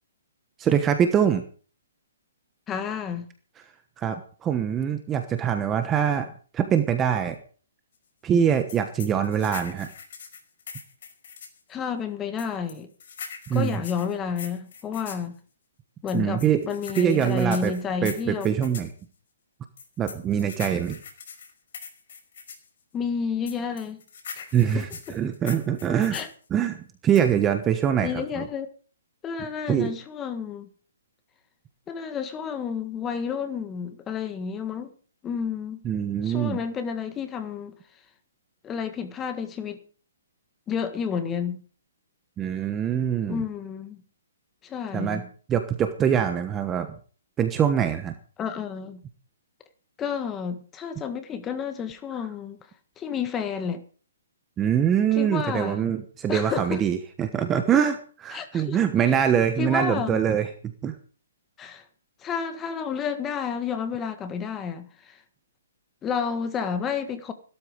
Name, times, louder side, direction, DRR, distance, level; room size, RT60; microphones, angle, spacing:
voice 1, 0.6-1.4 4.0-4.2 4.4-6.3 6.5-7.3 8.2-9.9 13.5-13.8 16.1-16.6 17.0-17.7 18.0-18.9 20.0-21.0 24.5-26.2 26.5-28.1 28.4-28.5 29.7-29.9 35.8-36.6 42.4-43.4 44.9-45.2 45.5-46.9 47.4-48.1 54.6-60.5 60.8-60.9, right 8 dB, 10° right, 1.1 m, -23 dB
voice 2, 2.7-3.2 11.7-12.9 13.5-15.3 16.0-18.5 22.9-24.0 24.4-24.5 24.7-25.2 26.1-26.3 28.0-28.7 29.2-30.7 31.9-34.9 35.2-35.8 36.2-37.8 38.6-39.8 40.7-41.6 43.3-44.0 44.6-45.3 48.4-49.0 50.0-52.6 53.0-53.8 55.1-55.9 56.3-56.8 58.3-58.8 59.1-59.2 59.6-60.2 61.6-61.8 62.2-65.2 66.0-67.3, left 6 dB, 10° left, 1.6 m, -30 dB
sound 1, 8.7-11.6 12.4-15.3 16.1-18.9 19.8-22.7 23.5-26.3 27.2-27.5, left 6 dB, 45° left, 5.4 m, -41 dB
16.0 x 13.0 x 5.3 m
hypercardioid pair, 170°, 0 cm